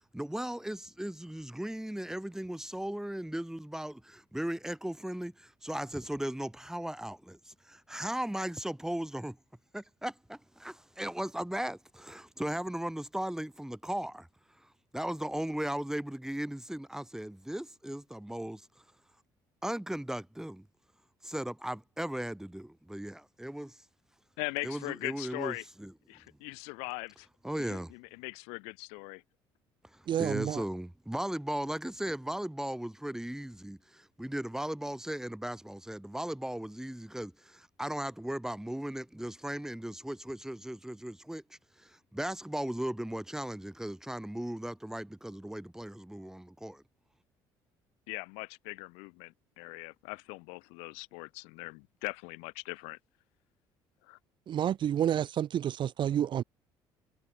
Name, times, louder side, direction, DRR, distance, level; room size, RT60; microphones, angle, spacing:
voice 1, 0.1-9.4 9.7-14.3 14.9-18.6 19.6-20.7 21.2-23.8 24.6-25.5 25.8-25.9 27.4-27.9 29.9-46.8, right 1 dB, 5° right, 1.6 m, -37 dB
voice 2, 24.4-25.6 26.1-27.3 27.6-29.2 48.1-53.0 54.0-54.2, left 32 dB, 80° left, 1.3 m, -40 dB
voice 3, 30.1-30.6 54.5-56.4, right 10 dB, 45° right, 0.4 m, -29 dB
supercardioid pair, 65°, 11 cm